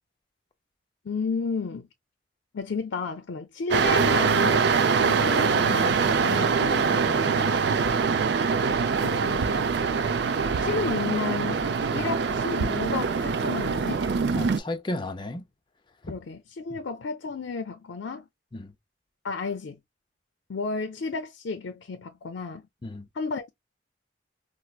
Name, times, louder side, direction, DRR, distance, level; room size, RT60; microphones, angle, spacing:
voice 1, 1.0-1.9 2.5-7.7 9.0-9.5 9.9-10.1 10.6-14.1 16.0-18.3 19.2-19.8 20.5-22.7 23.1-23.5, left 4 dB, 75° left, 0.5 m, -32 dB
sound 1, 3.7-14.6, right 5 dB, 65° right, 0.4 m, -24 dB
voice 2, 9.0-9.7 12.0-12.1 14.3-15.4 16.0-16.1 16.7-16.8 18.5-18.7 22.8-23.1, left 2 dB, 25° left, 0.5 m, -35 dB
4.4 x 2.0 x 2.3 m
head